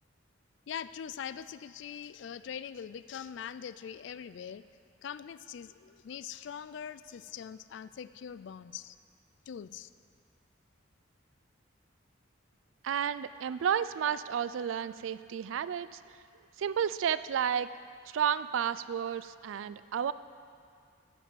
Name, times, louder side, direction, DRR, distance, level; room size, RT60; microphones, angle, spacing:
voice 1, 0.7-4.6 5.0-9.0 9.5-9.9, left 8 dB, 65° left, 15 dB, 0.3 m, -42 dB
voice 2, 12.8-16.0 16.6-17.7 18.1-20.1, right 8 dB, 80° right, 15 dB, 0.3 m, -31 dB
12.5 x 5.3 x 7.8 m, 2.2 s
head